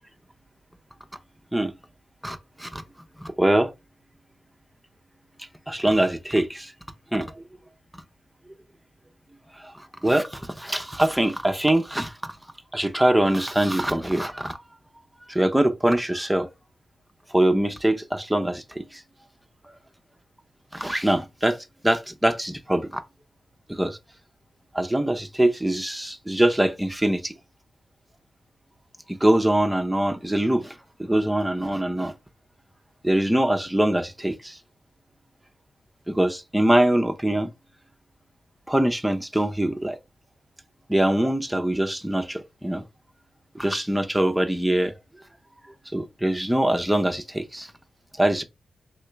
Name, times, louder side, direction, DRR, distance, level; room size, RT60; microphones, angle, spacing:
voice 1, 2.2-2.8 3.2-3.7 5.7-6.7 7.1-7.4 9.5-12.3 12.7-14.6 15.3-16.5 17.3-19.0 20.7-23.0 23.7-24.0 24.7-27.3 29.1-32.1 33.0-34.6 36.1-37.5 38.7-40.0 40.9-42.8 43.5-44.9 45.9-47.7 48.2-48.4, right 1 dB, 5° right, 0.7 m, -23 dB
3.1 x 2.7 x 3.4 m
supercardioid pair, 45°, 0 cm